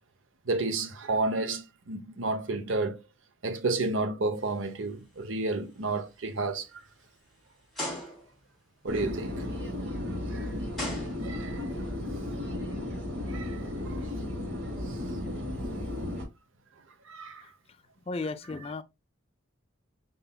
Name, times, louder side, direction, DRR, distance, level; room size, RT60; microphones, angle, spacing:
voice 1, 0.5-3.0 3.4-6.7 8.8-9.5 10.3-10.5 11.2-11.6 13.3-14.0 15.1-15.3 17.1-17.4, right 3 dB, 85° right, 0.8 m, -31 dB
sound 1, 4.6-4.9 5.4-5.6 6.3-6.4 7.7-8.5 10.0-10.1 10.7-11.7, left 1 dB, ahead, 2.4 m, -37 dB
sound 2, 8.9-16.2, left 1 dB, 65° right, 2.1 m, -34 dB
voice 2, 18.1-18.8, left 3 dB, 30° left, 0.4 m, -34 dB
5.5 x 3.8 x 2.2 m
head